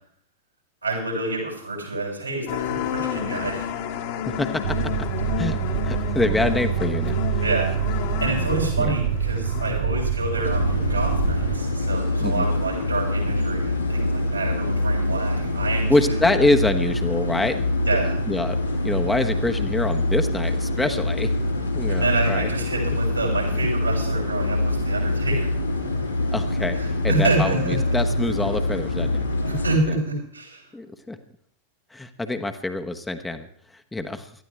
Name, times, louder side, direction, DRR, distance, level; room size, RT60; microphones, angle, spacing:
voice 1, 0.8-3.7 7.4-16.2 17.8-18.2 21.9-25.5 26.8-27.8 29.5-30.6, right 2 dB, 85° right, -2 dB, 6.7 m, -28 dB
sound 1, 2.5-10.8 11.2-11.3 12.3-12.4, left 9 dB, 50° left, 1.9 m, -31 dB
voice 2, 4.2-4.9 5.4-7.4 8.8-8.9 12.2-12.5 15.9-17.7 18.3-18.6 18.8-21.3 21.7-22.5 23.5-23.6 26.3-29.2 29.9-30.0 30.7-31.2 31.9-34.3, left 2 dB, 10° left, 6 dB, 1.2 m, -25 dB
sound 2, 4.6-11.6, right 7 dB, 60° right, 1.1 m, -26 dB
sound 3, 10.4-29.8, left 2 dB, 85° left, 4.0 m, -25 dB
19.0 x 13.5 x 3.4 m, 0.63 s
figure-of-eight pair, 90°, 0 cm